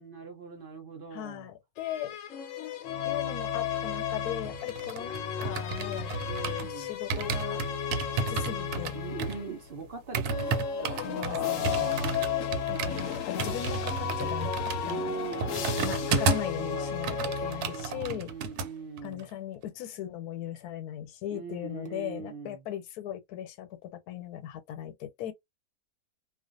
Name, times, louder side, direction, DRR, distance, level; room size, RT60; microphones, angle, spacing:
voice 1, 0.0-1.5 6.3-6.9 8.9-10.6 10.8-12.2 14.8-16.2 16.6-17.2 17.4-19.2 21.3-22.6, right 5 dB, 55° right, 0.6 m, -41 dB
voice 2, 1.1-2.2 3.0-6.1 6.6-7.6 8.3-9.0 10.9-12.2 12.7-14.5 14.8-15.2 15.7-18.3 19.0-25.3, left 11 dB, 90° left, 1.1 m, -38 dB
sound 1, 1.8-9.6 10.2-18.1, left 7 dB, 65° left, 0.9 m, -33 dB
sound 2, 4.4-6.7 7.1-16.6 16.9-18.7 19.0-19.2, right 5 dB, 80° right, 1.1 m, -33 dB
2.4 x 2.3 x 2.4 m
omnidirectional pair, 1.6 m